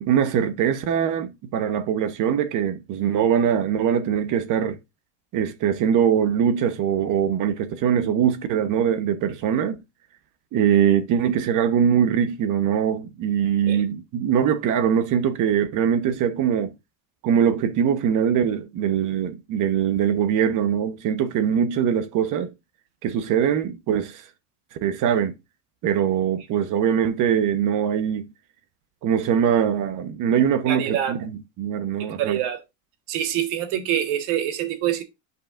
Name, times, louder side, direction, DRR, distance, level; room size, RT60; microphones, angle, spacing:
voice 1, 0.0-4.8 5.3-9.8 10.5-16.7 17.2-22.5 23.0-24.2 24.7-25.3 25.8-28.3 29.0-32.4, right 8 dB, 40° right, 0.9 m, -22 dB
voice 2, 30.7-31.1 32.0-32.6 33.1-35.0, right 11 dB, 65° right, 1.4 m, -25 dB
10.0 x 5.5 x 2.5 m
supercardioid pair, 140°, 45 cm